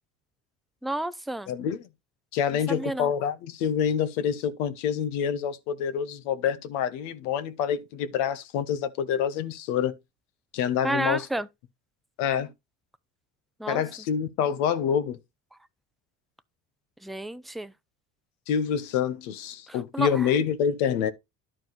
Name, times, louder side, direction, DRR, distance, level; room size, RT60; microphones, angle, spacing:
voice 1, 0.8-1.5 2.7-3.1 10.8-11.5 13.6-13.8 17.0-17.7 19.7-20.3, right 1 dB, ahead, 0.3 m, -31 dB
voice 2, 1.5-1.9 2.3-9.9 10.5-11.3 12.2-12.5 13.7-15.2 18.5-21.1, left 8 dB, 85° left, 1.1 m, -27 dB
11.5 x 4.6 x 4.0 m
supercardioid pair, 100°, 38 cm